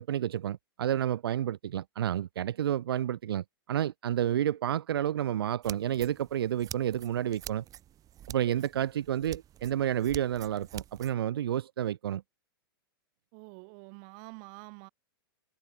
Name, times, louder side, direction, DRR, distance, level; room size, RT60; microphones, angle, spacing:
voice 1, 0.0-7.6 8.3-12.2, right 11 dB, 80° right, 0.5 m, -30 dB
sound 1, 5.6-11.1, right 12 dB, 30° right, 1.2 m, -47 dB
voice 2, 13.3-14.9, right 40 dB or more, 50° right, 3.5 m, -47 dB
hypercardioid pair, 115°, 12 cm